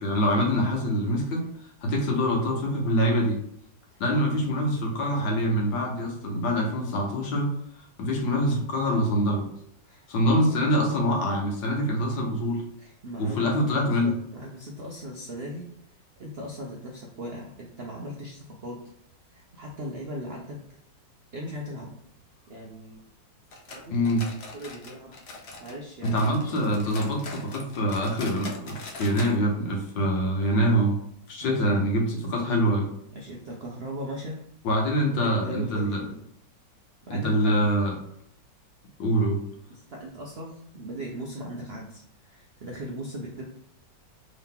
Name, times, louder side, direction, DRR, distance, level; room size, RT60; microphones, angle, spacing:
voice 1, 0.0-1.4 1.8-3.4 4.0-7.5 8.0-9.5 10.1-12.6 13.2-14.1 23.9-24.2 26.0-31.0 31.3-32.9 34.6-36.0 37.1-37.9 39.0-39.4, equal, 85° left, 0 dB, 1.7 m, -25 dB
voice 2, 12.8-15.7 16.2-18.8 19.3-20.6 21.3-21.9 22.5-23.0 23.7-24.1 24.5-25.2 25.6-26.2 31.4-31.8 33.1-34.4 34.8-34.9 35.2-36.2 37.1-37.7 39.7-43.4, equal, 75° right, -2 dB, 0.5 m, -38 dB
sound 1, 23.5-25.8 26.0-29.4 29.6-29.7 30.1-30.2 30.8-30.9, left 3 dB, 60° left, 0.7 m, -42 dB
3.7 x 2.9 x 3.6 m, 0.72 s
omnidirectional pair, 2.0 m